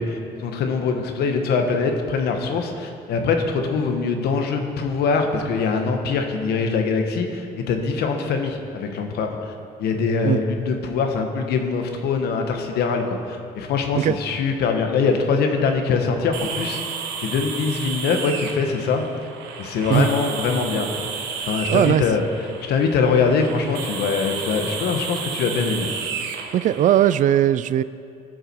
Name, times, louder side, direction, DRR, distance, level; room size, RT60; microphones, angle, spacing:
voice 1, 0.0-9.5 9.8-16.8 17.2-19.0 19.6-21.1 21.4-22.2 22.6-25.9, left 5 dB, 70° left, 4 dB, 1.4 m, -23 dB
sound 1, 16.3-27.1, right 6 dB, 85° right, 1.2 m, -32 dB
voice 2, 21.7-22.0 26.5-27.8, right 11 dB, 50° right, 16 dB, 0.4 m, -18 dB
18.0 x 6.7 x 4.7 m, 2.5 s
cardioid pair, 110°, 17 cm